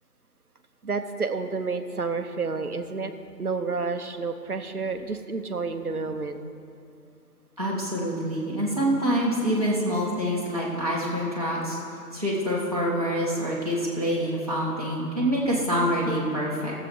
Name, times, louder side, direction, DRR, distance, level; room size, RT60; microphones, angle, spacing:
voice 1, 0.8-3.1 3.4-6.4, right 4 dB, 60° right, 7 dB, 0.9 m, -30 dB
voice 2, 7.6-11.8 12.1-16.7, equal, 20° right, -6 dB, 1.5 m, -26 dB
14.5 x 7.6 x 5.2 m, 2.5 s
figure-of-eight pair, 175°, 49 cm